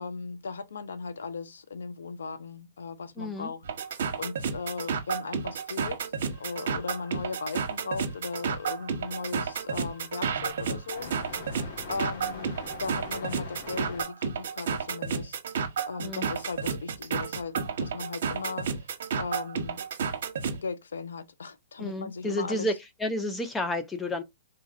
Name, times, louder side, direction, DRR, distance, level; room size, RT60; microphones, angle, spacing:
voice 1, 0.0-11.4 11.9-12.5 12.8-19.8 20.5-22.7, left 4 dB, 90° left, 0.5 m, -37 dB
voice 2, 3.2-3.5 16.0-16.3 21.8-24.2, left 1 dB, 10° left, 0.3 m, -31 dB
sound 1, 3.6-20.6, right 6 dB, 70° right, 1.0 m, -31 dB
sound 2, 6.3-14.0, left 4 dB, 50° left, 1.3 m, -46 dB
3.9 x 2.5 x 2.4 m
hypercardioid pair, 145°, 0 cm